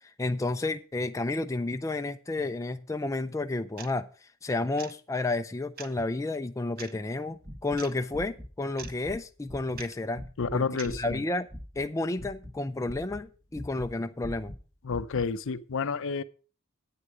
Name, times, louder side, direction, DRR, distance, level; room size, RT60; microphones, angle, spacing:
voice 1, 0.0-10.2 10.5-11.5 11.8-14.5, left 2 dB, 15° left, 0.4 m, -31 dB
sound 1, 3.8-3.9 4.8-4.9 5.8-5.9 6.8-7.0 7.8-7.9 8.8-8.9 9.8-9.9 10.8-10.9, right 7 dB, 40° right, 0.8 m, -42 dB
sound 2, 7.4-8.5 8.8-9.2 9.5-11.9 12.2-13.9 14.2-15.3, equal, 10° right, 1.4 m, -42 dB
voice 2, 10.4-11.2 14.8-16.2, left 5 dB, 60° left, 0.6 m, -30 dB
9.7 x 8.8 x 4.8 m
head